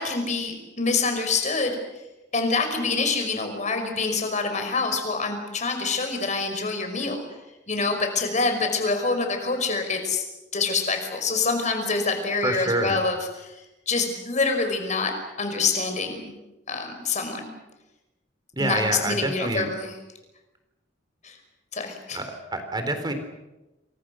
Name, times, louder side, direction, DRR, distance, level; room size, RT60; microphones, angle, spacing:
voice 1, 0.0-1.8 2.3-7.2 7.7-10.2 10.5-13.5 13.9-15.1 15.4-16.3 16.7-17.5 18.6-19.9 21.2-21.4 21.7-22.2, left 4 dB, 40° left, 5 dB, 5.6 m, -26 dB
voice 2, 12.4-13.0 18.5-19.7 22.1-22.2 22.5-23.1, right 2 dB, 25° right, 7 dB, 4.0 m, -26 dB
28.5 x 24.5 x 6.5 m, 1.0 s
head